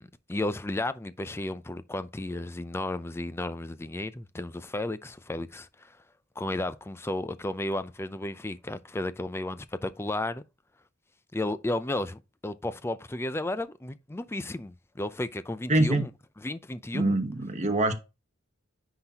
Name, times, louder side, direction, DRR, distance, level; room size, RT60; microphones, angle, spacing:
voice 1, 0.0-6.0 6.4-10.4 11.3-16.1 16.4-17.2, left 2 dB, 10° left, 0.4 m, -33 dB
voice 2, 15.7-16.0 16.9-17.9, right 2 dB, 35° right, 1.1 m, -24 dB
9.8 x 4.0 x 2.9 m
head